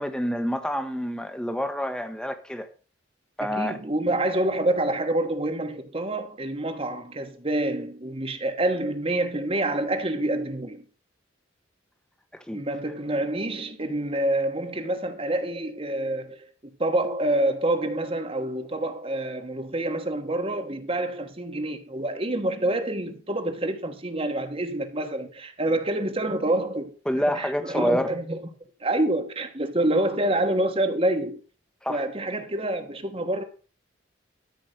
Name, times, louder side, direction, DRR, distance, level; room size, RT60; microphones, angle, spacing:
voice 1, 0.0-2.7 3.4-3.8 12.3-12.6 27.1-28.1 31.8-32.0, equal, 5° left, 1.1 m, -28 dB
voice 2, 3.4-10.8 12.5-26.9 27.3-28.4 28.8-31.4 31.9-33.4, right 1 dB, 30° right, 1.3 m, -27 dB
13.0 x 5.1 x 6.7 m
head